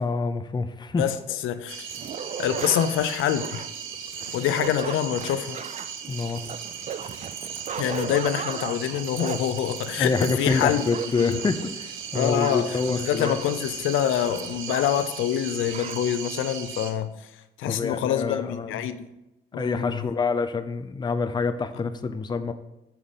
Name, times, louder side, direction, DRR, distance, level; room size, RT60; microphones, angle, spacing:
voice 1, 0.0-1.1 6.1-6.4 10.0-13.3 17.6-18.8 19.6-22.5, left 4 dB, 20° left, 9 dB, 0.6 m, -26 dB
voice 2, 1.0-1.9 2.4-3.7 4.3-5.6 7.8-10.9 11.2-11.4 12.1-17.1 17.6-19.0 19.5-20.0, left 10 dB, 85° left, 11 dB, 0.6 m, -26 dB
sound 1, 1.7-16.9, right 7 dB, 80° right, 0.9 m, -37 dB
sound 2, 1.9-15.1 15.3-15.4 15.7-16.0, right 7 dB, 35° right, 0.4 m, -37 dB
5.8 x 5.0 x 6.4 m, 0.90 s
cardioid pair, 90°, 20 cm